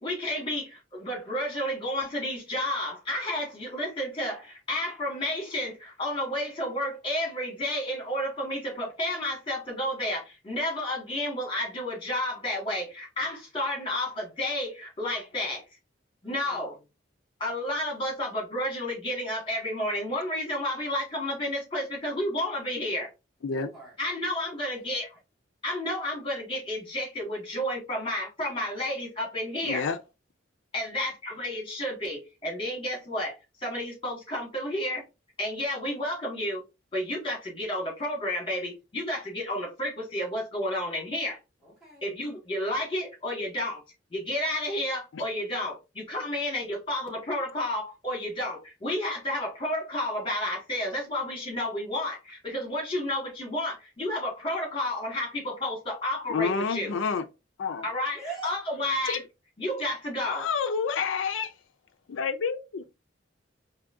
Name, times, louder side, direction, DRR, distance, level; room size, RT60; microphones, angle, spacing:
voice 1, 0.0-15.6 16.2-16.8 17.4-23.1 24.0-25.1 25.6-29.9 30.7-35.0 35.4-36.6 36.9-41.4 42.0-43.8 44.1-56.9 57.8-59.2 59.6-60.5, left 1 dB, 25° left, 1.8 m, -31 dB
voice 2, 16.2-16.7 23.5-23.9 41.6-42.0 58.1-58.6, right 4 dB, 5° right, 2.2 m, -42 dB
voice 3, 29.6-30.0 45.1-45.2 56.3-57.2 57.6-57.9 59.1-59.2 60.2-61.5 62.1-62.8, left 5 dB, 80° left, 0.4 m, -29 dB
4.7 x 2.7 x 2.6 m
head